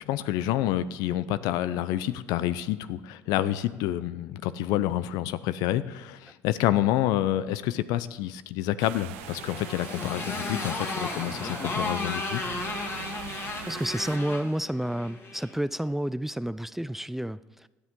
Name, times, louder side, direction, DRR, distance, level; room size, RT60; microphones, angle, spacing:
voice 1, 0.1-12.4, left 13 dB, 75° left, 0.6 m, -28 dB
sound 1, 8.8-14.2, right 17 dB, 90° right, 0.3 m, -42 dB
Motorcycle, 9.1-15.5, left 3 dB, 35° left, 2.2 m, -34 dB
voice 2, 13.7-17.7, right 1 dB, 5° right, 0.3 m, -30 dB
17.0 x 10.5 x 3.7 m
supercardioid pair, 80°, 7 cm